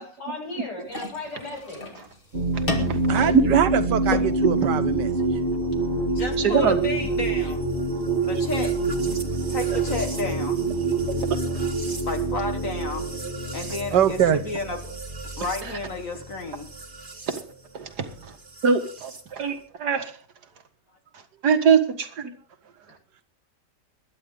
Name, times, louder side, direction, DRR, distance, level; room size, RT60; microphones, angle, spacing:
voice 1, 0.0-1.9 3.2-3.3, left 2 dB, 90° left, 8.2 m, -36 dB
sound 1, 0.9-8.9, left 1 dB, 30° left, 2.7 m, -37 dB
sound 2, 2.3-17.4 18.6-19.2, right 2 dB, 30° right, 1.8 m, -27 dB
voice 2, 2.5-3.4 6.4-6.8 11.3-11.6 17.3-17.4 17.7-18.1 18.6-20.2 21.4-22.3, right 6 dB, 65° right, 2.3 m, -23 dB
voice 3, 3.1-5.1 8.0-8.1 13.9-14.4, right 9 dB, 80° right, 1.8 m, -22 dB
voice 4, 6.1-7.6 8.2-8.7 9.5-10.6 12.1-13.1 13.5-14.9 15.4-16.7, left 3 dB, 50° left, 1.9 m, -32 dB
21.5 x 11.0 x 3.8 m
omnidirectional pair, 1.8 m